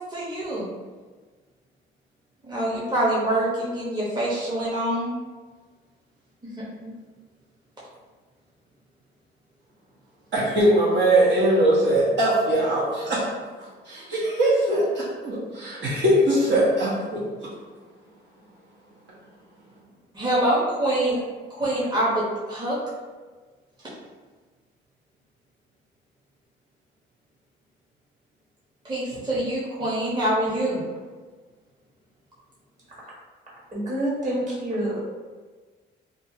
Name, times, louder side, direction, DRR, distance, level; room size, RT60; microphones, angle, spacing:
voice 1, 0.1-0.7 2.4-5.2 6.4-6.9 20.1-21.2 21.5-22.8 28.8-30.8, right 1 dB, 20° right, -8 dB, 0.8 m, -25 dB
voice 2, 10.3-13.3 13.9-17.2, right 1 dB, 65° right, -8 dB, 0.8 m, -21 dB
voice 3, 33.7-35.0, right 1 dB, 35° right, -7 dB, 1.3 m, -27 dB
2.7 x 2.3 x 2.6 m, 1.4 s
cardioid pair, 90°, 20 cm